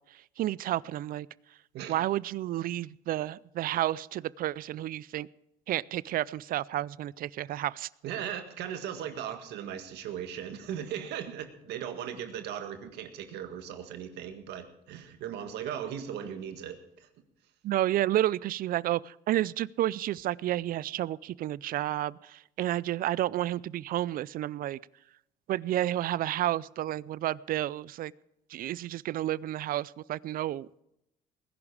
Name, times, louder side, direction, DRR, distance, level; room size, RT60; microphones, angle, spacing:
voice 1, 0.4-1.3 1.9-5.3 5.7-7.9 17.6-24.8 25.5-28.1 28.5-30.8, right 13 dB, 60° right, 22 dB, 0.4 m, -31 dB
voice 2, 1.7-2.1 8.0-17.1, right 9 dB, 80° right, 7 dB, 1.8 m, -38 dB
20.0 x 11.0 x 4.9 m, 0.83 s
cardioid pair, 110°, 17 cm